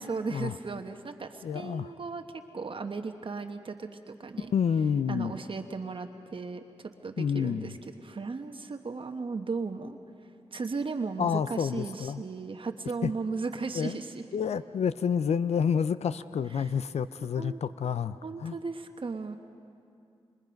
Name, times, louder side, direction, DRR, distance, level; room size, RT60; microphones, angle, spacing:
voice 1, 0.0-4.5 5.1-10.0 10.5-14.2 16.5-16.7 17.4-17.6 18.2-19.4, right 4 dB, 55° right, 5 dB, 1.1 m, -36 dB
voice 2, 1.4-1.9 4.5-5.3 7.2-7.7 11.2-12.2 13.0-13.1 13.7-14.0 14.3-18.6, left 7 dB, 80° left, 14 dB, 0.5 m, -29 dB
26.5 x 25.5 x 5.3 m, 2.4 s
cardioid pair, 65°, 11 cm